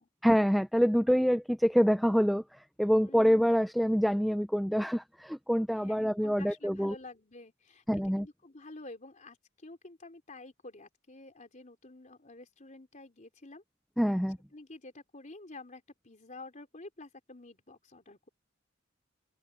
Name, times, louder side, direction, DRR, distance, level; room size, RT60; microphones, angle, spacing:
voice 1, 0.2-2.4 2.8-6.9 7.9-8.3 14.0-14.4, equal, ahead, 0.4 m, -26 dB
voice 2, 2.9-3.3 5.7-13.6 14.5-18.3, left 2 dB, 35° left, 3.8 m, -50 dB
open air
head